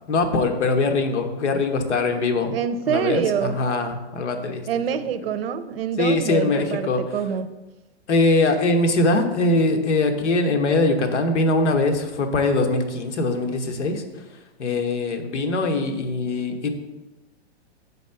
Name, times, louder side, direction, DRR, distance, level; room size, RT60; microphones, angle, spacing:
voice 1, 0.1-2.6 2.9-4.7 6.0-7.0 8.1-14.0 14.6-16.7, left 2 dB, 80° left, 6 dB, 1.1 m, -22 dB
voice 2, 2.5-3.6 4.7-7.5, right 8 dB, 60° right, 12 dB, 0.6 m, -26 dB
6.2 x 4.1 x 5.6 m, 1.1 s
hypercardioid pair, 160°, 35 cm